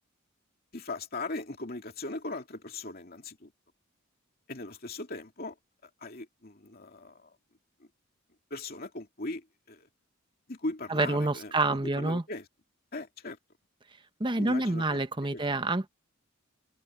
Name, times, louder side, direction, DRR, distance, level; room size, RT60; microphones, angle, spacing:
voice 1, 0.7-3.5 4.5-5.6 6.0-7.3 7.8-7.9 8.5-9.9 10.5-12.5 12.9-13.4 14.4-15.0 15.3-15.4, left 2 dB, 45° left, 2.6 m, -39 dB
voice 2, 10.9-12.2 14.2-15.9, right 2 dB, 25° right, 1.1 m, -28 dB
open air
head